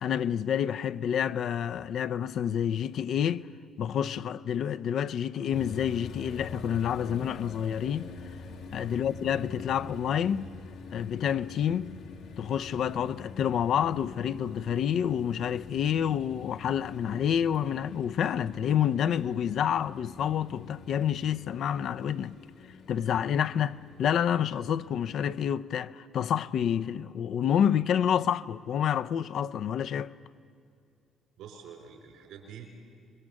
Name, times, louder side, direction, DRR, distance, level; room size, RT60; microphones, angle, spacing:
voice 1, 0.0-3.5 3.8-8.1 8.7-10.5 10.9-11.9 12.4-22.4 22.9-30.1, left 9 dB, 65° left, 0.5 m, -28 dB
sound 1, 5.5-25.5, left 3 dB, 85° left, 1.8 m, -46 dB
voice 2, 31.4-32.8, right 7 dB, 80° right, 4.4 m, -47 dB
26.0 x 21.5 x 7.4 m
supercardioid pair, 60°, 0 cm